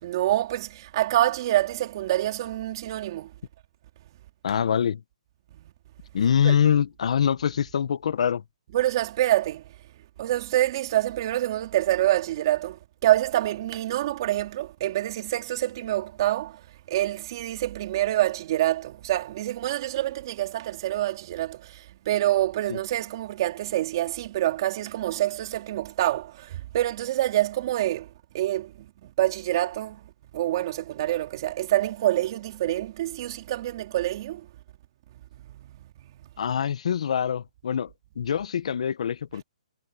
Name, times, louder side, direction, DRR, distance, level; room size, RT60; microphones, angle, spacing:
voice 1, 0.0-3.3 5.5-5.7 6.4-6.5 8.7-9.7 10.2-34.5 35.4-36.3, right 14 dB, 35° right, 4.0 m, -26 dB
voice 2, 4.4-5.0 6.1-8.4 22.7-22.8 36.4-37.9 38.2-39.4, left 8 dB, 60° left, 0.9 m, -24 dB
hypercardioid pair, 165°, 4 cm